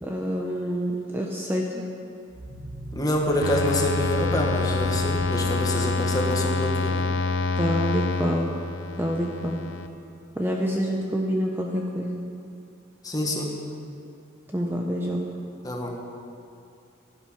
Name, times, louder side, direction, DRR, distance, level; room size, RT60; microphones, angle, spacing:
voice 1, 0.0-1.8 7.6-8.5 9.0-9.6 10.3-12.2 14.5-15.3, equal, 10° right, -1 dB, 0.9 m, -27 dB
sound 1, 2.3-6.3, right 1 dB, 50° right, 4.1 m, -41 dB
voice 2, 2.9-7.0 13.0-13.6 15.6-16.0, left 1 dB, 20° left, 0 dB, 1.8 m, -26 dB
sound 2, 3.4-9.9, left 3 dB, 75° left, 0.8 m, -26 dB
15.5 x 11.5 x 5.8 m, 2.4 s
head